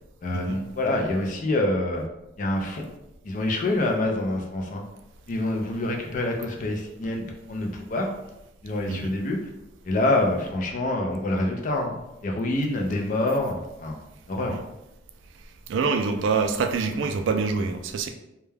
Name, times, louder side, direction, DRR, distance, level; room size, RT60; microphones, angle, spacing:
voice 1, 0.2-2.0 2.4-2.9 3.2-4.8 5.3-8.1 8.6-9.4 9.8-14.0 14.3-14.6, left 1 dB, 40° left, 2 dB, 0.4 m, -26 dB
voice 2, 15.7-18.1, right 4 dB, 75° right, 5 dB, 0.3 m, -25 dB
2.2 x 2.2 x 3.2 m, 0.91 s
head